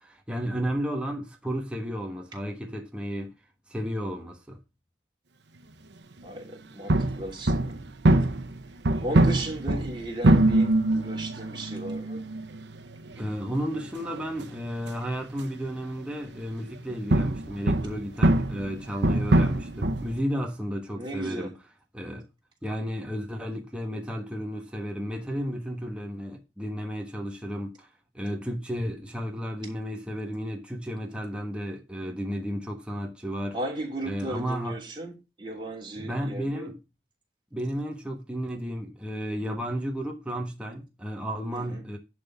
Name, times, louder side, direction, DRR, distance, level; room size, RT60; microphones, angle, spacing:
voice 1, 0.0-3.3 3.7-4.6 13.1-21.5 21.9-22.3 22.6-27.9 28.1-33.6 34.0-34.8 36.0-36.8 37.5-42.0, equal, 5° right, 1.2 m, -33 dB
voice 2, 6.2-7.7 9.0-12.2 20.9-21.5 33.5-35.1 35.4-36.7 41.5-41.8, right 1 dB, 25° right, 2.9 m, -36 dB
sound 1, 6.9-15.8 16.6-20.2, right 1 dB, 80° right, 1.0 m, -24 dB
10.5 x 4.2 x 6.9 m
head